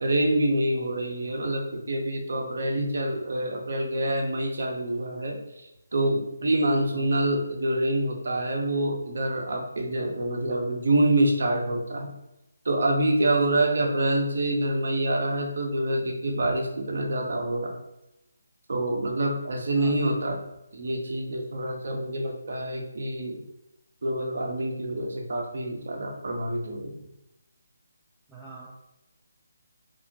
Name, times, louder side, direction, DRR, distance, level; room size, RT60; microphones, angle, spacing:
voice 1, 0.0-12.1 12.6-17.8 18.7-20.4 20.7-23.4 24.0-26.9, right 1 dB, 60° right, 2 dB, 0.5 m, -26 dB
voice 2, 28.3-28.7, right 4 dB, 5° right, -7 dB, 0.3 m, -44 dB
2.9 x 2.1 x 2.6 m, 0.90 s
figure-of-eight pair, 150°, 0 cm